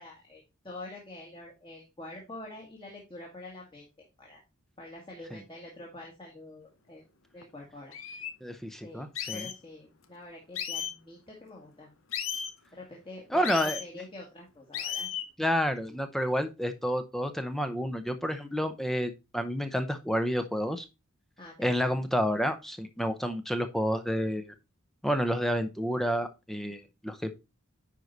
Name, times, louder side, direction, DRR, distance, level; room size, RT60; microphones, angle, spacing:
voice 1, 0.0-4.4 4.8-7.0 7.3-7.9 8.8-11.9 12.7-15.1 16.6-16.7 21.4-22.0, left 2 dB, 25° left, -2 dB, 1.9 m, -46 dB
sound 1, 7.4-7.5 7.9-8.3 9.2-9.6 10.6-10.9 12.1-12.5 13.4-13.8 14.7-15.3, left 9 dB, 70° left, 0.9 m, -34 dB
voice 2, 8.4-9.5 13.3-13.8 15.4-20.9 21.6-24.5 25.0-27.3, equal, ahead, 8 dB, 0.7 m, -29 dB
10.0 x 4.7 x 3.9 m, 0.26 s
head